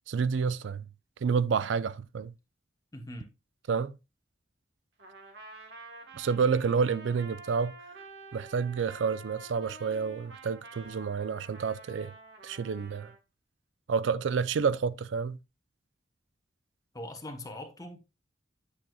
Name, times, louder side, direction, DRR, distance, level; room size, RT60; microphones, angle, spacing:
voice 1, 0.1-0.8 1.2-2.3 3.7-3.9 6.1-7.7 8.3-12.1 12.4-13.1 13.9-15.4, right 5 dB, 90° right, 0.4 m, -29 dB
voice 2, 2.9-3.3 16.9-18.0, left 1 dB, 20° left, 1.0 m, -41 dB
Trumpet, 5.0-13.2, right 2 dB, 65° right, 1.3 m, -49 dB
8.6 x 6.1 x 2.3 m
head